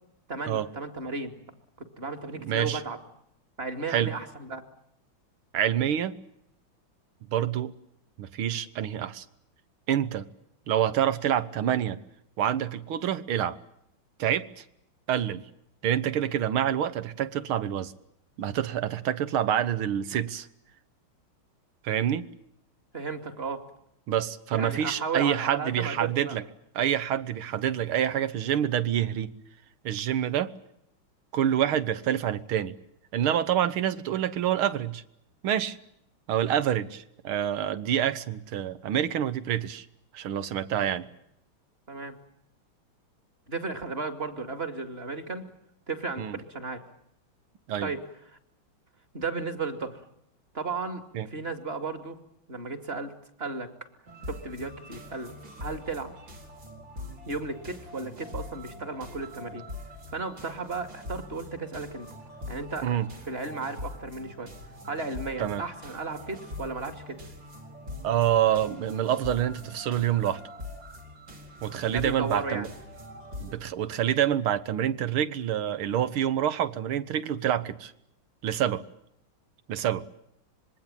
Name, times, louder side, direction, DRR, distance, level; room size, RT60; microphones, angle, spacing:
voice 1, 0.3-1.3 1.8-3.0 3.6-4.6 22.9-23.6 24.5-26.4 41.9-42.2 43.5-45.5 45.9-46.8 47.8-48.0 49.1-50.0 50.5-52.2 52.5-53.9 54.3-55.3 55.6-56.1 57.3-59.6 60.1-62.1 62.5-62.9 63.3-64.5 64.9-67.2 71.9-72.7, right 4 dB, 30° right, 2.5 m, -34 dB
voice 2, 2.4-2.8 3.9-4.1 5.5-6.2 7.3-7.7 8.2-9.3 9.9-10.3 10.7-12.0 12.4-13.6 14.2-14.6 15.1-15.5 15.8-17.9 18.4-20.5 21.8-22.3 24.1-26.4 26.8-29.3 29.8-30.5 31.3-32.8 33.1-35.0 35.4-35.8 36.3-39.9 40.1-41.1 46.2-46.4 47.7-47.9 51.1-51.3 62.8-63.1 65.4-65.6 68.0-70.4 71.6-72.7 73.4-77.9 78.4-78.8 79.7-80.0, right 10 dB, 80° right, 2.1 m, -27 dB
sound 1, 54.1-73.5, left 2 dB, 60° right, 4.9 m, -43 dB
26.0 x 21.5 x 9.0 m
omnidirectional pair, 2.3 m